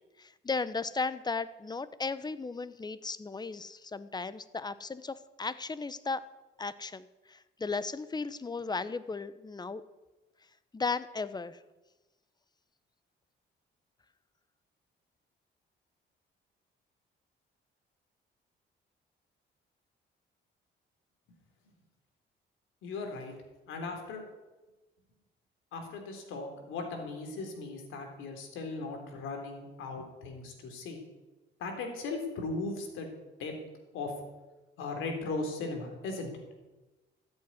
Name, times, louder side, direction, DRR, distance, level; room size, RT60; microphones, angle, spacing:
voice 1, 0.2-6.2 6.6-9.8 10.7-11.6, left 4 dB, 20° left, 15 dB, 0.9 m, -35 dB
voice 2, 22.8-23.3 23.7-24.3 25.7-31.0 31.6-33.1 33.4-33.5 33.9-34.1 34.8-36.3, left 3 dB, 90° left, 4 dB, 3.5 m, -37 dB
14.0 x 7.9 x 9.8 m, 1.1 s
cardioid pair, 90°, 20 cm